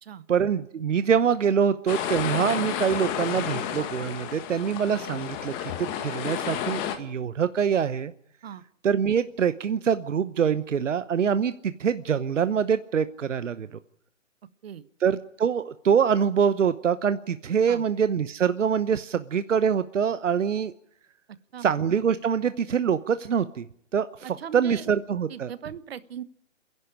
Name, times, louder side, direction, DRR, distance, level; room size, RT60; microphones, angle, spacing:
voice 1, 0.3-8.1 8.8-13.8 15.0-20.7 21.6-23.7 23.9-25.5, right 7 dB, 75° right, 13 dB, 1.1 m, -25 dB
sound 1, 1.9-7.0, left 9 dB, 20° left, 1.7 m, -31 dB
voice 2, 24.2-24.8 25.3-26.2, right 9 dB, 55° right, 15 dB, 1.4 m, -39 dB
27.5 x 11.0 x 10.0 m, 0.71 s
hypercardioid pair, 150°, 37 cm